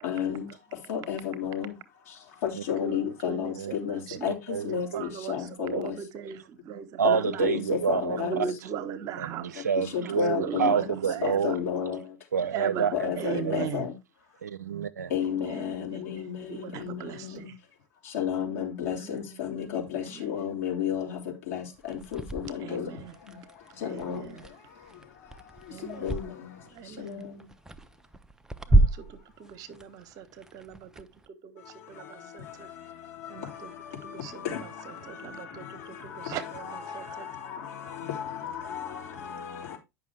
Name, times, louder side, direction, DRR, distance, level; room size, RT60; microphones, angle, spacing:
voice 1, 0.0-0.5 0.9-1.7 2.4-3.5 3.8-4.3 4.6-5.9 7.0-8.4 9.9-10.8 11.2-12.0 12.9-13.9 15.1-17.3 18.1-21.2 21.5-21.6 21.9-22.9 23.8-24.2 26.0-26.5 27.0-27.2 34.4-34.6 38.1-38.6, left 9 dB, 60° left, 2.8 m, -31 dB
voice 2, 3.3-4.3 4.9-7.4 8.2-9.6 10.4-11.5 12.4-12.9 13.2-13.8 15.4-17.5 18.9-19.2 20.0-20.4 22.6-23.1 23.8-24.4 25.7-26.2 26.7-27.3 28.7-29.0 29.4-31.1 31.4-31.5 31.9-32.7 33.3-33.7 34.0-37.3, right 7 dB, 40° right, 1.1 m, -39 dB
voice 3, 4.5-5.0 7.0-8.5 9.2-11.5 12.3-13.1 13.5-13.6 14.4-15.1, right 7 dB, 75° right, 0.6 m, -28 dB
sound 1, 21.7-26.3 26.7-31.3, right 2 dB, 5° right, 0.6 m, -29 dB
9.4 x 5.9 x 3.4 m
figure-of-eight pair, 80°, 9 cm